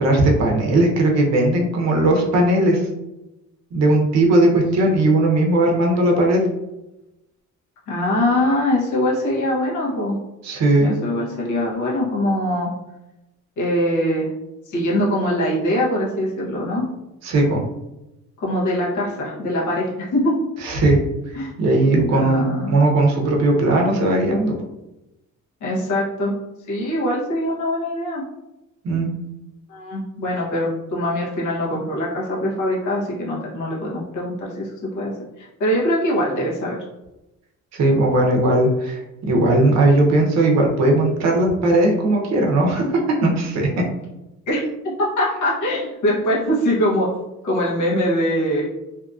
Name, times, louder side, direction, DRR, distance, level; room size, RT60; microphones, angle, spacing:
voice 1, 0.0-2.9 3.7-6.4 10.4-10.9 17.2-17.6 20.6-21.0 21.6-24.5 28.8-29.1 37.7-42.8 43.2-43.7, right 2 dB, 55° right, 0 dB, 0.7 m, -18 dB
voice 2, 7.9-10.2 10.8-12.7 13.6-14.3 14.7-16.8 18.4-20.3 21.3-21.5 22.1-22.7 25.6-26.3 26.7-28.2 29.7-35.1 35.4-36.8 44.5-47.1 47.4-48.7, left 1 dB, 70° left, -5 dB, 0.9 m, -22 dB
2.7 x 2.5 x 2.3 m, 0.95 s
cardioid pair, 145°, 31 cm